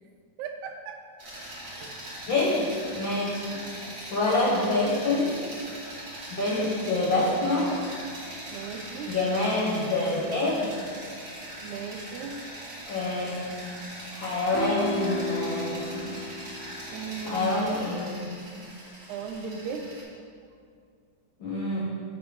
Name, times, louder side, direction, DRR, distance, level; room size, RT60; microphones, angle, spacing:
voice 1, 0.4-1.0 1.3-1.9 4.6-4.8 6.4-6.7 8.5-9.2 11.6-12.4 16.9-17.6 19.1-19.9, right 6 dB, 85° right, 5 dB, 2.0 m, -37 dB
sound 1, 1.2-20.0, right 1 dB, 40° right, 0.9 m, -41 dB
voice 2, 2.3-2.7 2.9-3.6 4.1-5.3 6.3-7.8 9.1-10.7 12.9-13.3 14.1-16.0 17.3-18.2 21.4-21.8, left 2 dB, 80° left, -5 dB, 1.0 m, -26 dB
sound 2, 14.5-16.9, left 2 dB, 45° left, 0.6 m, -32 dB
7.0 x 3.7 x 5.9 m, 2.2 s
omnidirectional pair, 3.4 m